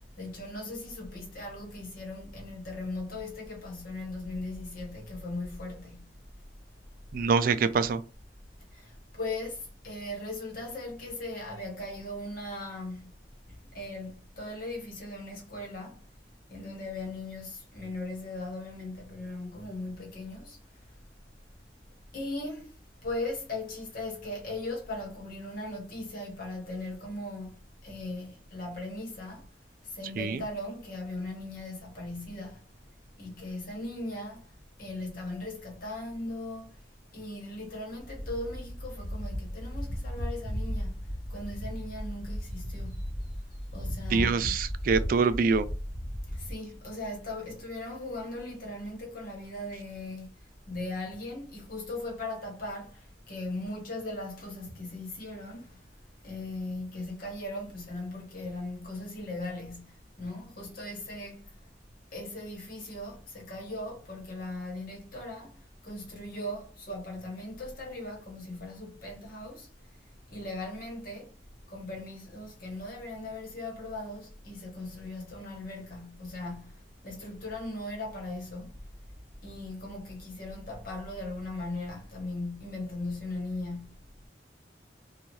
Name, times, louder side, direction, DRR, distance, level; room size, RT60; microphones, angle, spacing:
voice 1, 0.2-6.2 8.7-13.1 13.5-16.0 16.5-20.6 22.1-22.7 23.0-29.5 29.8-32.6 33.2-34.5 34.8-36.8 37.1-41.0 41.3-43.0 43.7-44.6 46.3-50.4 50.7-55.8 56.2-61.5 62.1-69.7 70.3-71.3 71.7-78.8 79.4-84.0, left 2 dB, 55° left, 1.1 m, -38 dB
voice 2, 7.1-8.0 30.2-30.4 44.1-45.6, right 5 dB, 50° right, 0.3 m, -25 dB
sound 1, 38.0-46.5, equal, 30° left, 1.1 m, -36 dB
3.0 x 2.3 x 2.7 m
head